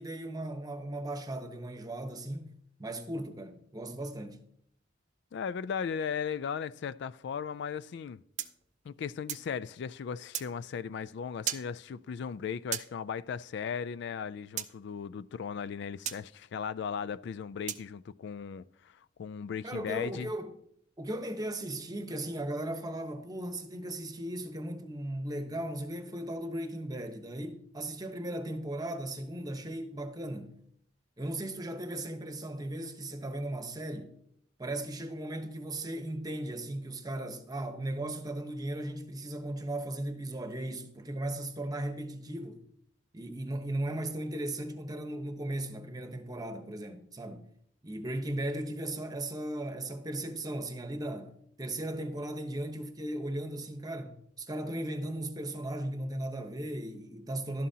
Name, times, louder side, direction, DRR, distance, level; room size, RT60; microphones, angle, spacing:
voice 1, 0.0-2.5 2.8-4.4 19.6-20.5 21.0-30.6 31.2-34.2 34.6-42.6 43.1-47.5 47.8-57.7, right 1 dB, 20° right, 1.0 m, -37 dB
voice 2, 5.3-8.2 8.8-20.3, left 7 dB, 65° left, 0.3 m, -37 dB
sound 1, 8.4-9.5 10.3-10.5 11.5-11.7 12.7-12.9 14.6-14.7 16.1-16.2 17.7-17.9, right 11 dB, 40° right, 0.5 m, -35 dB
12.0 x 11.0 x 2.8 m
head